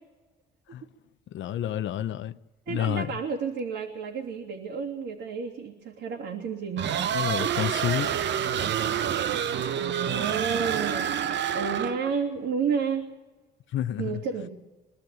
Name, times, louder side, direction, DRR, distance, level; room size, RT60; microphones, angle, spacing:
voice 1, 1.3-2.4 2.7-3.2 7.1-8.1 13.7-14.2, left 11 dB, 75° left, 0.8 m, -29 dB
voice 2, 2.7-6.9 7.4-7.5 9.8-11.1 11.5-13.1 14.0-14.5, right 6 dB, 80° right, 3.1 m, -31 dB
sound 1, 6.8-12.1, right 9 dB, 65° right, 0.8 m, -28 dB
sound 2, 8.0-12.9, right 5 dB, 40° right, 1.7 m, -44 dB
24.5 x 13.5 x 9.3 m
cardioid pair, 90°, 20 cm